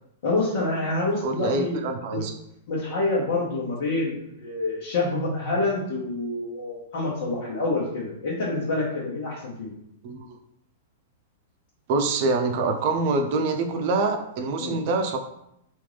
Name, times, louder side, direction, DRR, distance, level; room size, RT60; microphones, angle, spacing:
voice 1, 0.2-1.8 2.1-2.2 2.7-9.7 14.6-14.8, left 2 dB, 60° left, -6 dB, 1.1 m, -27 dB
voice 2, 1.2-2.3 10.0-10.4 11.9-15.2, right 3 dB, 50° right, 5 dB, 0.6 m, -25 dB
3.5 x 2.6 x 3.3 m, 0.77 s
hypercardioid pair, 105°, 0 cm